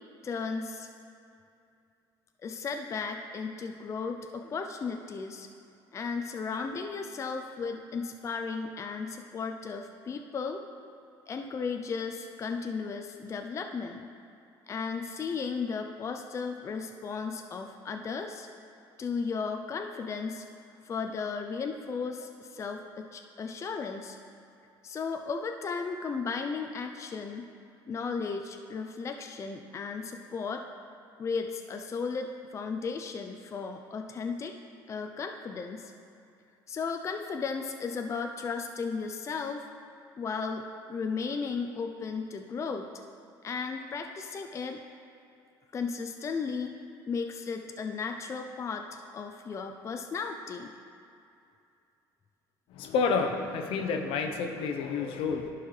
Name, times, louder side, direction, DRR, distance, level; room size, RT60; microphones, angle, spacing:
voice 1, 0.2-0.9 2.4-5.5 5.9-10.7 11.3-14.1 14.7-18.5 19.0-20.4 20.8-24.2 24.8-27.5 27.9-30.7 31.2-34.5 34.9-35.9 36.7-39.6 40.2-42.9 43.4-44.8 45.7-46.7 47.1-50.7, left 5 dB, 30° left, 4 dB, 0.4 m, -35 dB
voice 2, 52.7-55.5, left 5 dB, 70° left, 5 dB, 0.7 m, -29 dB
11.5 x 4.6 x 3.2 m, 2.6 s
supercardioid pair, 95°, 9 cm